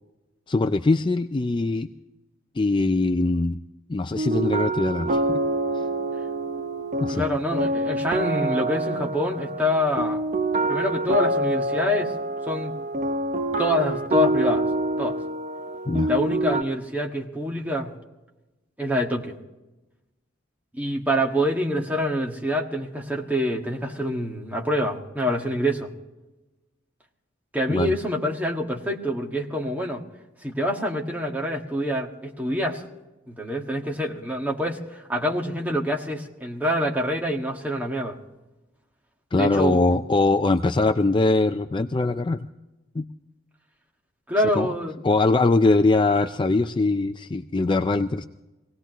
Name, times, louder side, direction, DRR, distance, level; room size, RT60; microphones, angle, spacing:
voice 1, 0.5-1.9 2.6-3.6 3.9-5.4 7.0-7.2 15.9-16.1 27.7-27.9 39.3-42.5 43.0-43.1 44.5-44.7 45.0-48.2, left 3 dB, 25° left, 9 dB, 0.4 m, -22 dB
sound 1, 4.2-16.6, right 2 dB, 40° right, 0.6 m, -26 dB
voice 2, 7.1-10.2 10.7-12.1 12.4-12.7 13.6-14.7 15.0-15.2 16.1-17.9 18.8-19.4 20.8-25.9 27.5-30.0 30.4-32.8 33.3-38.2 39.4-40.0 44.3-45.0, equal, 10° right, 0 dB, 1.7 m, -26 dB
23.5 x 18.0 x 3.0 m, 1.0 s
head